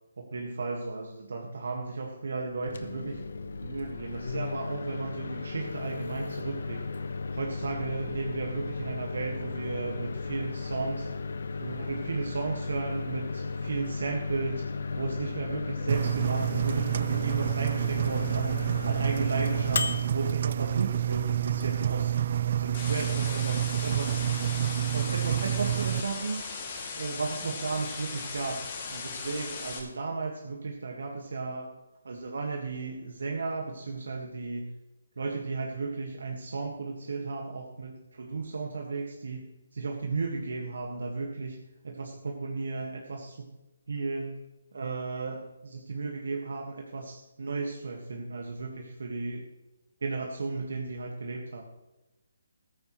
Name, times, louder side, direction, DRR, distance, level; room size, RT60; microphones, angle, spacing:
voice 1, 0.2-3.2 3.6-6.9 7.3-11.1 11.6-14.7 15.0-19.9 20.1-24.4 24.9-26.4 27.0-31.7 32.0-34.7 35.2-41.6 41.8-43.5 43.9-44.4 44.7-49.4 50.0-51.6, right 3 dB, 75° right, 1 dB, 1.9 m, -34 dB
Microwave oven, 2.5-21.3, left 4 dB, 70° left, 1.1 m, -35 dB
Engine, 15.9-26.0, right 10 dB, 45° right, 0.3 m, -28 dB
sound 1, 22.7-29.8, left 4 dB, 35° left, 2.6 m, -38 dB
15.0 x 13.5 x 3.2 m, 1.0 s
hypercardioid pair, 160°, 0 cm